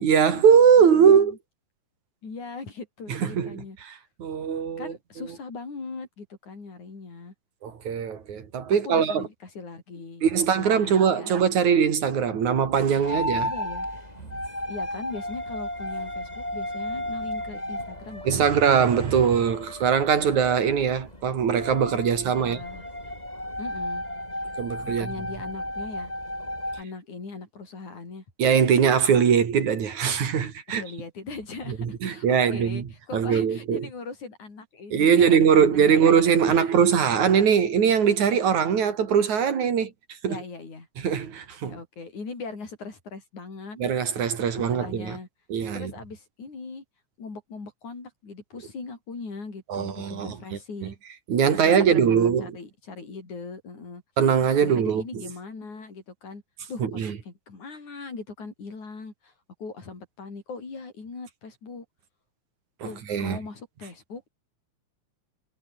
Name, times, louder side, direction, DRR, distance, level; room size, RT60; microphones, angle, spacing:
voice 1, 0.0-1.4 3.1-3.5 4.2-4.9 7.6-9.2 10.2-13.5 18.3-22.6 24.6-25.1 28.4-30.8 31.8-32.8 33.1-33.9 34.9-39.9 40.2-40.4 41.0-41.8 43.8-45.2 45.5-45.9 49.7-50.4 51.3-52.6 54.2-55.0 56.8-57.1 63.1-63.4, right 7 dB, 80° right, 4.1 m, -21 dB
voice 2, 0.8-1.4 2.2-3.8 4.8-7.3 8.7-11.3 13.4-13.9 14.7-18.5 22.2-22.8 23.6-24.0 25.0-26.1 26.8-28.2 30.7-36.2 36.5-36.7 40.2-40.9 41.6-43.8 44.7-45.3 45.7-46.8 47.2-51.0 51.5-54.0 54.6-56.4 56.7-59.3 59.6-61.9 62.8-64.3, left 4 dB, 80° left, 7.6 m, -40 dB
sound 1, 13.0-26.8, left 1 dB, 10° left, 8.1 m, -34 dB
omnidirectional pair, 3.3 m